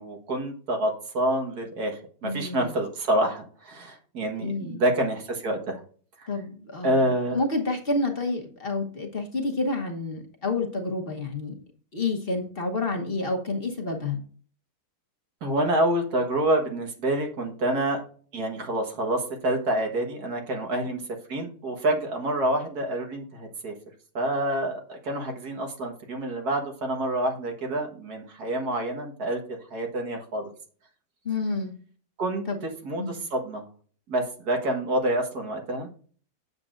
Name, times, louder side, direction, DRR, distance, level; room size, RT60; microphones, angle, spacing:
voice 1, 0.0-5.8 6.2-6.3 6.8-7.4 15.4-18.0 18.3-21.0 21.3-23.7 24.1-30.5 32.2-33.6 34.1-35.9, right 1 dB, 75° right, 3 dB, 2.0 m, -27 dB
voice 2, 2.2-2.7 4.4-4.8 6.3-7.0 7.3-11.5 11.9-14.2 31.2-31.7 32.5-32.6 33.0-33.2, left 3 dB, 40° left, 2 dB, 1.2 m, -29 dB
7.6 x 7.4 x 2.5 m, 0.43 s
omnidirectional pair, 1.7 m